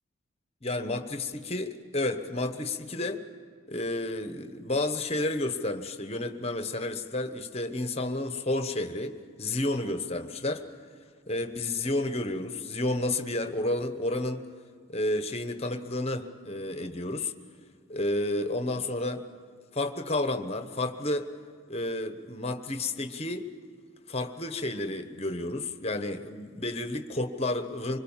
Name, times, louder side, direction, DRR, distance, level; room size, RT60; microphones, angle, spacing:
voice 1, 0.6-3.2 3.7-10.6 11.3-14.5 14.9-17.3 17.9-19.2 19.7-21.3 21.7-23.5 24.1-28.0, left 2 dB, 30° left, 9 dB, 1.1 m, -31 dB
25.0 x 22.0 x 7.3 m, 2.2 s
head